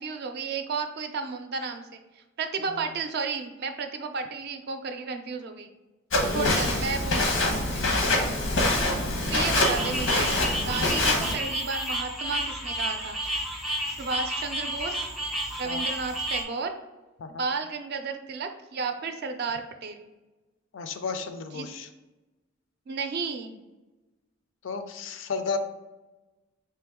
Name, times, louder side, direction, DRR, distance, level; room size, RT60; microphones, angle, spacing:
voice 1, 0.0-1.8 2.4-5.7 6.3-7.9 9.2-10.3 10.7-13.2 13.9-15.0 15.6-16.7 17.3-20.1 21.5-21.7 22.9-23.6, right 5 dB, 55° right, 6 dB, 0.4 m, -33 dB
voice 2, 2.6-2.9 6.2-6.5 7.3-7.6 15.6-15.9 17.2-17.5 20.7-21.9 24.6-25.6, left 5 dB, 70° left, 8 dB, 0.4 m, -34 dB
Walk footsteps, 6.1-11.3, left 2 dB, 90° left, 0.9 m, -25 dB
sound 1, 9.5-16.4, equal, ahead, 0.5 m, -31 dB
3.5 x 2.9 x 3.5 m, 1.1 s
head